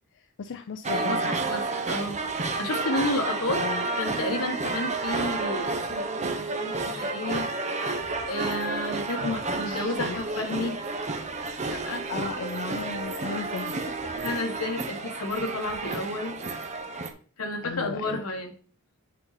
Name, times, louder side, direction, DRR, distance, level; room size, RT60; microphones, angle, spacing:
voice 1, 0.1-1.3 3.5-3.8 9.7-10.5 12.1-13.7 17.6-18.2, left 5 dB, 55° left, 7 dB, 0.5 m, -36 dB
sound 1, 0.8-17.1, right 3 dB, 30° right, 0.8 m, -31 dB
voice 2, 0.9-3.7 4.0-10.8 11.7-12.0 14.2-16.4 17.4-18.5, left 2 dB, 85° left, 4 dB, 1.5 m, -32 dB
8.2 x 4.0 x 4.2 m, 0.42 s
head